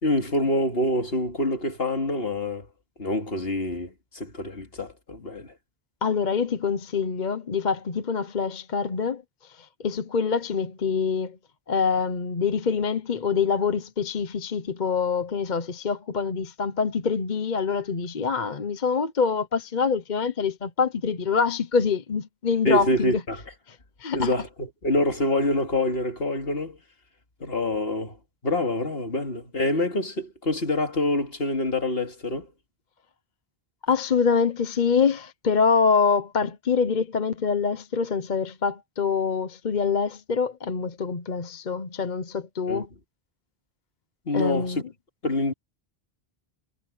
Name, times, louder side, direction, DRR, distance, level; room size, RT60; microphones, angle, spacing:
voice 1, 0.0-2.7 3.0-5.5 22.6-23.4 24.1-26.8 27.4-28.2 28.4-32.5 42.7-42.9 44.3-44.8 45.2-45.5, left 1 dB, 70° left, 2.8 m, -26 dB
voice 2, 6.0-11.4 11.7-23.2 23.7-24.3 33.8-42.9 44.3-44.8, left 5 dB, 50° left, 1.0 m, -25 dB
omnidirectional pair, 1.0 m